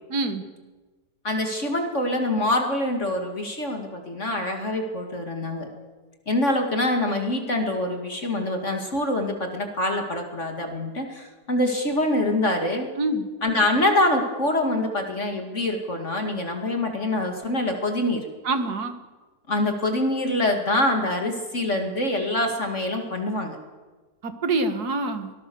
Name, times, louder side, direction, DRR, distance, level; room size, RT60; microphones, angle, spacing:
voice 1, 0.1-0.4 13.0-13.3 18.4-18.9 24.2-25.3, right 2 dB, 70° right, 8 dB, 2.2 m, -25 dB
voice 2, 1.2-5.9 6.3-12.9 13.4-18.2 19.5-23.6, left 1 dB, 45° left, 4 dB, 2.5 m, -25 dB
23.5 x 18.5 x 7.0 m, 1.2 s
omnidirectional pair, 1.8 m